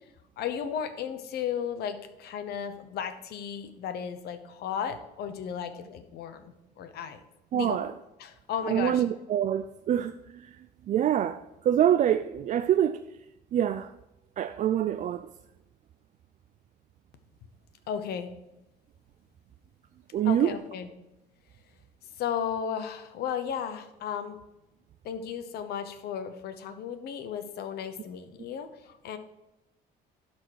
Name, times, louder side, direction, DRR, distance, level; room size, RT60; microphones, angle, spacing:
voice 1, 0.4-7.2 7.5-7.8 8.2-9.0 17.9-18.3 20.2-20.9 22.2-24.4 25.0-29.2, left 8 dB, 70° left, 1.0 m, -34 dB
voice 2, 7.5-7.9 8.7-10.6 10.9-13.0 13.5-13.9 14.4-15.3 20.1-20.6, right 10 dB, 45° right, 0.4 m, -26 dB
12.0 x 4.3 x 5.0 m
cardioid pair, 110°, 17 cm